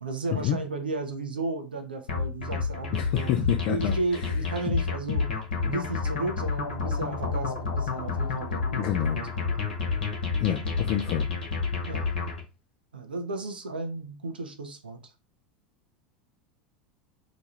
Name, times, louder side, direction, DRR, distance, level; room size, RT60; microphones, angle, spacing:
voice 1, 0.0-3.3 3.7-9.7 10.5-10.9 11.9-12.1 12.9-15.1, right 2 dB, 80° right, 0.7 m, -34 dB
sound 1, 2.1-12.4, left 4 dB, 75° left, 1.0 m, -29 dB
voice 2, 2.9-3.9 8.8-9.2 10.4-11.3, left 11 dB, 45° left, 0.4 m, -27 dB
2.9 x 2.3 x 4.1 m
figure-of-eight pair, 80°, 5 cm